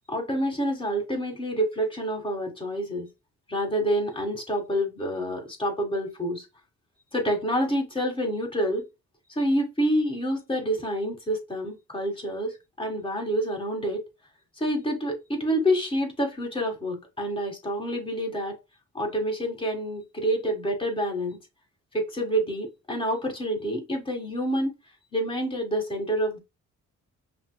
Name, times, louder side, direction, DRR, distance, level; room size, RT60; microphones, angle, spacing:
voice 1, 0.1-3.1 3.5-6.4 7.1-8.8 9.3-14.0 14.6-18.5 18.9-21.4 21.9-24.7 25.1-26.4, equal, 15° left, 1.6 m, -27 dB
5.5 x 2.0 x 2.3 m
cardioid pair, 90°, 30 cm